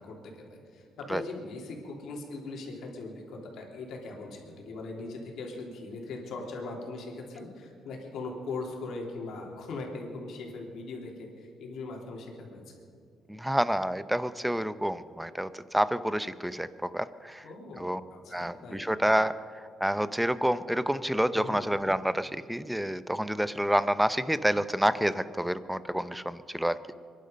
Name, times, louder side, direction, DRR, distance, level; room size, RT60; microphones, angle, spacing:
voice 1, 0.0-12.6 17.4-18.8 21.3-21.6, left 3 dB, 75° left, 0 dB, 3.2 m, -40 dB
voice 2, 13.3-17.5 17.8-18.0 18.3-19.3 19.8-26.8, equal, 5° right, 14 dB, 0.7 m, -28 dB
24.5 x 11.0 x 5.2 m, 2.3 s
cardioid pair, 90°, 0 cm